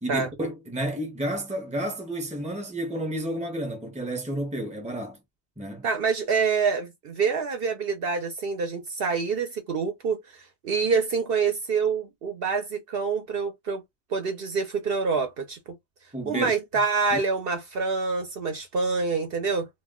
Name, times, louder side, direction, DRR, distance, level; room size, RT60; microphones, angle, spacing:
voice 1, 0.0-5.2 5.6-5.9 16.1-16.5 17.1-17.2, right 1 dB, 10° right, 0.5 m, -31 dB
voice 2, 5.8-13.8 14.1-15.6 16.3-19.7, right 5 dB, 60° right, 0.7 m, -26 dB
2.3 x 2.1 x 3.5 m
omnidirectional pair, 1.3 m